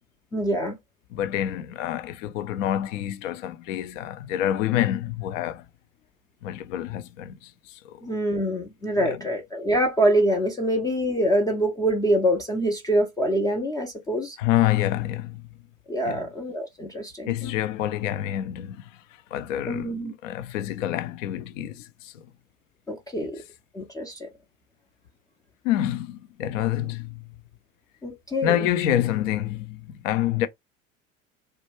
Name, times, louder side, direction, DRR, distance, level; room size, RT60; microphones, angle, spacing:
voice 1, 0.3-0.8 8.0-14.4 15.9-17.5 19.7-20.1 22.9-23.4 23.7-24.3 28.0-28.7, right 1 dB, 10° left, 0.3 m, -25 dB
voice 2, 1.1-5.6 6.4-8.1 9.0-9.2 14.4-15.4 16.1-16.3 17.3-18.9 19.3-22.2 25.6-27.3 28.4-30.5, left 12 dB, 70° left, 0.5 m, -27 dB
2.2 x 2.1 x 2.9 m
hypercardioid pair, 75°, 40 cm